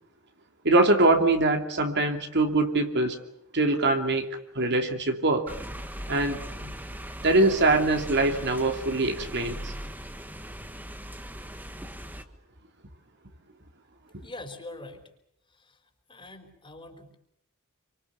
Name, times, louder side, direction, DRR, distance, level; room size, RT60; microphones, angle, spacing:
voice 1, 0.6-3.2 3.5-4.3 4.5-5.5 6.1-6.7 7.2-9.7, right 2 dB, 50° right, 5 dB, 2.9 m, -23 dB
sound 1, 5.5-12.2, equal, 10° right, 1.6 m, -39 dB
voice 2, 14.2-15.0 15.5-15.8 16.1-17.2, left 2 dB, 25° left, 5 dB, 4.5 m, -43 dB
28.5 x 25.5 x 7.0 m, 0.73 s
head